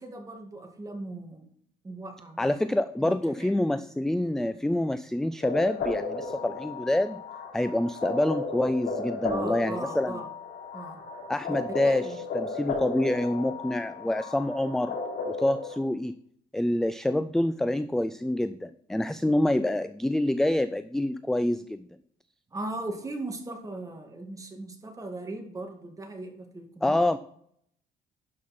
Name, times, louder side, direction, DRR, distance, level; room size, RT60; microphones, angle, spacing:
voice 1, 0.0-1.5 1.8-2.5 3.0-3.5 9.3-10.3 10.7-11.0 11.5-12.2 22.5-27.0, right 2 dB, 20° right, 3 dB, 1.9 m, -38 dB
voice 2, 2.4-7.2 7.5-10.2 11.3-15.0 15.3-16.1 16.5-21.9 26.8-27.2, left 1 dB, 5° left, 13 dB, 0.3 m, -27 dB
sound 1, 5.4-15.7, left 4 dB, 75° left, 3.3 m, -35 dB
11.5 x 5.5 x 4.2 m, 0.68 s
cardioid pair, 110°, 17 cm